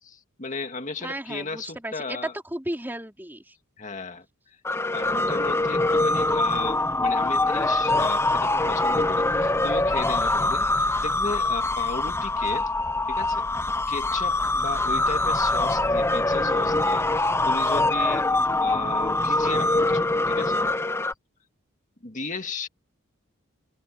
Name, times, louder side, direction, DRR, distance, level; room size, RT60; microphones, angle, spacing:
voice 1, 0.0-2.3 3.8-4.6 4.9-12.7 13.1-13.5 13.9-20.6 22.0-22.7, left 3 dB, 40° left, 2.1 m, -35 dB
voice 2, 1.0-3.5, right 1 dB, 10° right, 3.8 m, -34 dB
sound 1, 4.6-21.1, left 2 dB, 10° left, 0.8 m, -24 dB
head